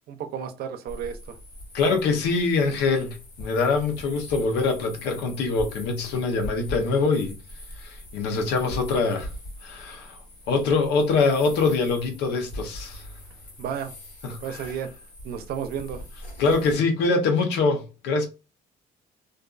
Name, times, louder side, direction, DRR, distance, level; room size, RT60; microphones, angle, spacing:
voice 1, 0.0-1.4 13.6-13.9 14.4-16.0, right 8 dB, 65° right, 0.6 m, -33 dB
sound 1, 0.9-16.8, equal, 50° left, 1.4 m, -42 dB
voice 2, 1.7-7.4 7.8-9.3 9.6-10.2 10.5-13.1 14.2-14.6 16.4-18.3, left 4 dB, 85° left, 0.7 m, -24 dB
2.5 x 2.3 x 2.4 m
cardioid pair, 110°, 17 cm